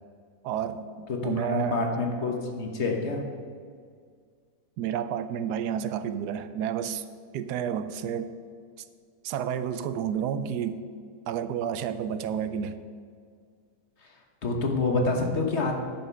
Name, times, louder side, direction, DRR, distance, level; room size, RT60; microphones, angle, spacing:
voice 1, 0.4-1.8 4.8-7.0 7.3-8.3 9.2-10.8 11.3-12.8, right 8 dB, 80° right, 12 dB, 1.1 m, -30 dB
voice 2, 1.2-3.2 14.4-15.8, left 3 dB, 45° left, 2 dB, 1.2 m, -27 dB
10.5 x 5.7 x 6.8 m, 2.1 s
omnidirectional pair, 1.7 m